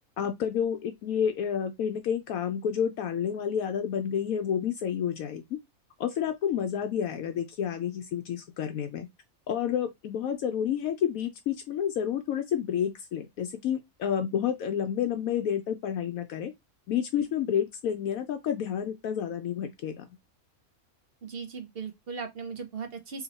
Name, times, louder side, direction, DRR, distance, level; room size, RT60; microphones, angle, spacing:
voice 1, 0.2-5.4 6.0-9.1 9.5-16.5 16.9-20.0, left 8 dB, 75° left, 1.0 m, -30 dB
voice 2, 21.2-23.2, right 5 dB, 50° right, 0.8 m, -38 dB
2.9 x 2.8 x 4.0 m
omnidirectional pair, 1.5 m